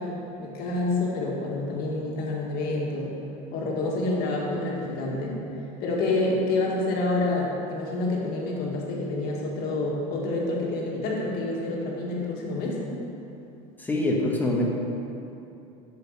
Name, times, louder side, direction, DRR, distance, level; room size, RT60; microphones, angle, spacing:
voice 1, 0.0-3.1 3.5-5.4 5.8-12.8, left 2 dB, 55° left, -3 dB, 1.8 m, -28 dB
voice 2, 13.8-14.6, left 1 dB, 10° left, -3 dB, 1.3 m, -24 dB
6.5 x 6.4 x 6.5 m, 2.8 s
supercardioid pair, 135°, 18 cm